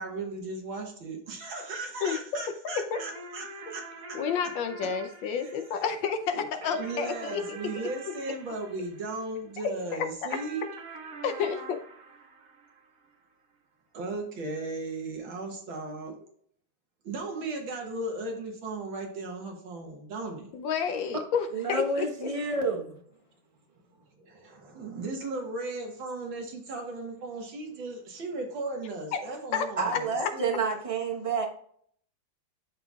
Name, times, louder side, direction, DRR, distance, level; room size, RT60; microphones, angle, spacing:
voice 1, 0.0-3.5 3.7-3.8 4.1-4.2 5.4-5.5 6.3-6.5 6.7-10.6 13.9-16.3 17.0-20.5 24.2-30.6, right 2 dB, 75° right, 2 dB, 2.1 m, -36 dB
voice 2, 2.0-3.0 4.1-7.9 11.2-11.8 20.5-22.3 29.1-29.2 29.5-29.7 30.2-30.3, left 6 dB, 70° left, 8 dB, 1.4 m, -30 dB
sound 1, 2.9-9.6 10.3-13.1, right 3 dB, 50° right, 1.5 m, -45 dB
voice 3, 21.5-23.0 29.8-31.5, right 3 dB, 25° right, 0 dB, 0.8 m, -29 dB
12.0 x 4.1 x 2.4 m, 0.62 s
omnidirectional pair, 2.2 m